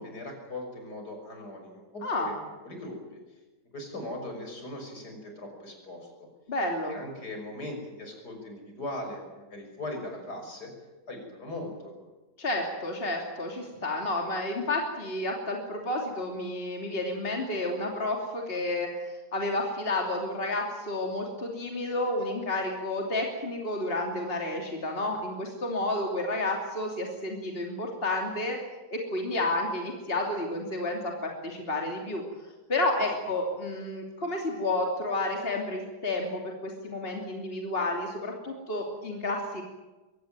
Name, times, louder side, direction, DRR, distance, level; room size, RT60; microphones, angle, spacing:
voice 1, 0.0-2.4 2.6-3.0 3.7-6.3 6.9-10.7 11.1-11.9 33.0-33.1, left 1 dB, 65° left, 3 dB, 6.6 m, -39 dB
voice 2, 6.5-7.0 12.4-28.6 28.9-32.2 32.7-39.6, left 2 dB, 35° left, 1 dB, 3.2 m, -31 dB
23.0 x 18.0 x 9.1 m, 1.2 s
omnidirectional pair, 1.8 m